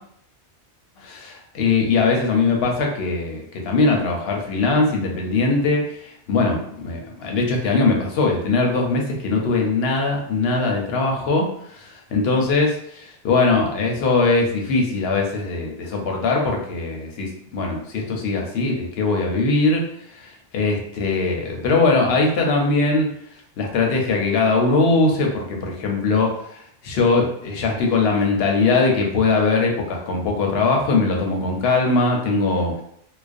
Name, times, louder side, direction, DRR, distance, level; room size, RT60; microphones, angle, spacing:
voice 1, 1.0-19.9 20.1-23.1 23.6-32.8, left 3 dB, 70° left, 1 dB, 0.8 m, -21 dB
2.4 x 2.1 x 2.4 m, 0.69 s
omnidirectional pair, 1.1 m